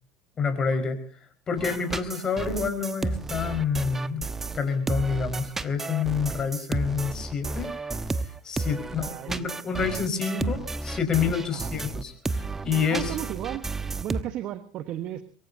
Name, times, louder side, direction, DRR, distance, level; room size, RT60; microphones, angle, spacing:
voice 1, 0.4-1.0 1.5-4.2 4.5-7.7 8.2-13.1, left 5 dB, 35° left, 7 dB, 4.8 m, -28 dB
sound 1, 1.6-14.2, right 3 dB, 15° right, 1.1 m, -32 dB
voice 2, 8.9-9.5 11.5-11.7 12.9-13.7 14.0-15.2, right 11 dB, 50° right, 12 dB, 1.2 m, -34 dB
23.0 x 23.0 x 2.8 m, 0.40 s
hypercardioid pair, 80°, 2 cm